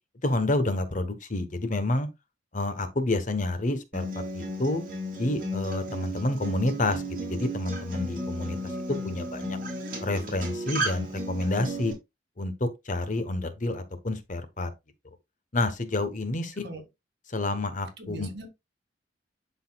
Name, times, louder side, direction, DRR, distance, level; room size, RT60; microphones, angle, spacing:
voice 1, 0.2-2.1 2.5-4.8 5.2-8.6 8.9-9.6 10.0-11.9 12.4-14.7 15.5-16.7 17.3-18.3, left 2 dB, 45° left, 1.1 m, -29 dB
Acoustic guitar, 3.9-11.9, right 1 dB, 50° right, 2.9 m, -34 dB
voice 2, 16.5-16.8 18.0-18.5, right 2 dB, 65° right, 2.0 m, -40 dB
11.5 x 4.0 x 2.3 m
head